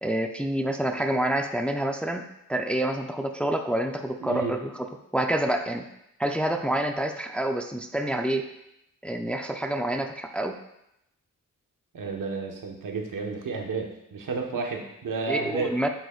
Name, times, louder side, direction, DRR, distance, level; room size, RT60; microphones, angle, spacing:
voice 1, 0.0-2.2 2.5-4.9 5.1-5.8 6.2-8.5 9.0-10.6 15.3-15.9, right 1 dB, 5° left, 4 dB, 0.5 m, -27 dB
voice 2, 4.2-4.5 11.9-15.7, right 4 dB, 70° right, 1 dB, 1.3 m, -31 dB
8.2 x 8.1 x 2.4 m, 0.81 s
cardioid pair, 90°, 33 cm